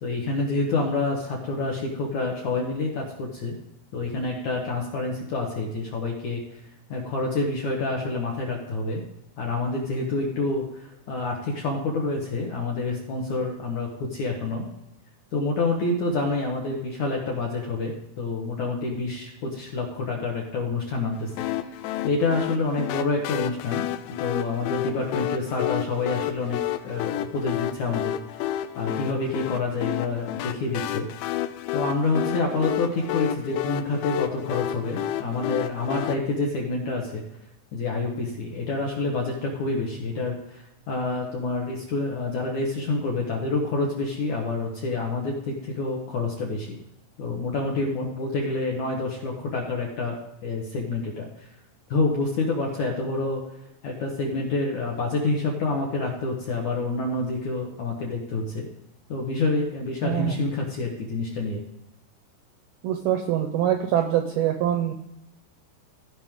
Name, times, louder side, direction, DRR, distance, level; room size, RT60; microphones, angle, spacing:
voice 1, 0.0-3.6 3.9-6.4 6.9-9.0 9.4-14.7 15.3-21.3 22.0-23.9 24.2-28.1 28.8-31.1 31.7-37.2 37.7-46.8 47.2-51.5 51.9-53.4 53.8-58.7 59.1-61.6, left 3 dB, 60° left, -2 dB, 2.0 m, -27 dB
sound 1, 21.4-36.1, left 12 dB, 80° left, 2.8 m, -30 dB
voice 2, 60.0-60.4 62.8-64.9, right 11 dB, 85° right, 6 dB, 2.2 m, -24 dB
16.5 x 5.5 x 3.6 m, 0.85 s
omnidirectional pair, 5.3 m